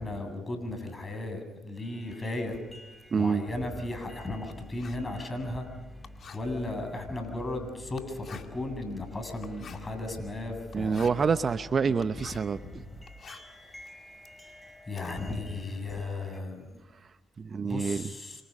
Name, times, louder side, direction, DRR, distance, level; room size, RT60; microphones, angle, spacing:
voice 1, 0.0-1.4 1.6-2.5 3.1-5.7 6.3-11.1 11.9-12.0 14.9-16.6 17.6-18.4, left 2 dB, 25° left, 5 dB, 7.8 m, -35 dB
sound 1, 1.8-16.4, left 1 dB, ahead, 5.0 m, -54 dB
Writing, 2.4-12.6 12.9-15.1, left 6 dB, 55° left, 2.2 m, -52 dB
voice 2, 3.1-3.4 10.7-12.6 17.4-18.0, right 5 dB, 45° right, 13 dB, 0.8 m, -27 dB
28.5 x 25.5 x 5.4 m, 1.2 s
hypercardioid pair, 55°, 0 cm